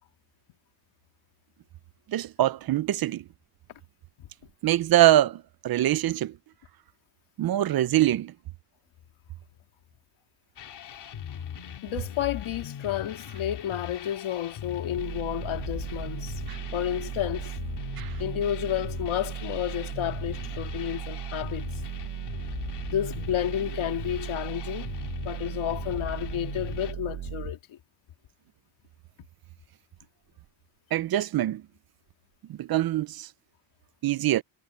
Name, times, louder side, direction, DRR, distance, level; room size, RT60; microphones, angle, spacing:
voice 1, 2.1-3.2 4.6-6.3 7.4-8.3 16.5-16.6 18.0-18.2 30.9-31.6 32.5-33.3 34.0-34.4, right 13 dB, 50° right, 0.5 m, -24 dB
sound 1, 10.6-26.9, left 9 dB, 60° left, 2.7 m, -40 dB
voice 2, 11.8-16.4 16.7-17.5 18.2-21.6 22.9-24.9 25.2-27.8, left 11 dB, 85° left, 2.3 m, -31 dB
sound 2, 15.0-27.5, right 12 dB, 80° right, 1.2 m, -37 dB
wide cardioid pair, 175°, 47 cm